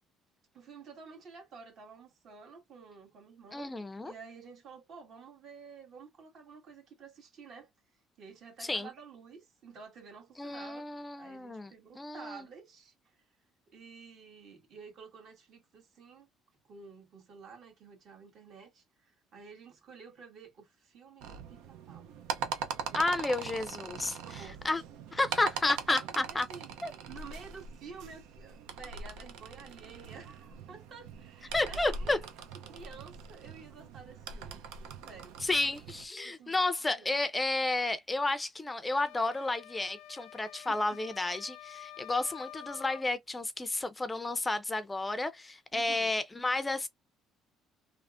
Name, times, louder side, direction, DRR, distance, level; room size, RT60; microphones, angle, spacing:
voice 1, 0.5-3.7 4.0-7.7 8.2-13.2 13.7-16.3 16.6-22.1 22.7-23.0 24.2-24.6 25.8-26.7 27.1-32.1 32.7-34.7 35.0-35.4 36.2-36.6 36.9-37.1 40.7-41.0 45.7-46.1, right 5 dB, 60° right, 1.5 m, -51 dB
voice 2, 3.5-4.1 8.7-8.9 10.4-12.4 22.9-24.8 25.1-26.5 26.8-26.9 31.5-32.2 35.4-46.9, left 2 dB, 15° left, 0.4 m, -32 dB
sound 1, 21.2-36.1, right 6 dB, 85° right, 0.5 m, -42 dB
sound 2, 38.9-43.1, left 12 dB, 80° left, 0.4 m, -49 dB
3.4 x 2.1 x 2.4 m
cardioid pair, 95°, 0 cm